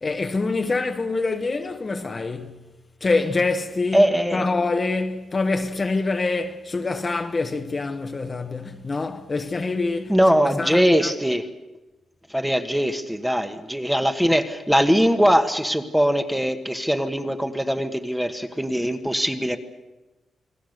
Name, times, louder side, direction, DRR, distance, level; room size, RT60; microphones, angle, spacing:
voice 1, 0.0-2.6 3.0-10.1 10.6-11.1, left 3 dB, 30° left, 1.2 m, -25 dB
voice 2, 3.9-4.5 10.1-11.5 12.3-19.6, equal, 5° right, 1.3 m, -21 dB
28.5 x 20.5 x 6.6 m
wide cardioid pair, 130°, 0 cm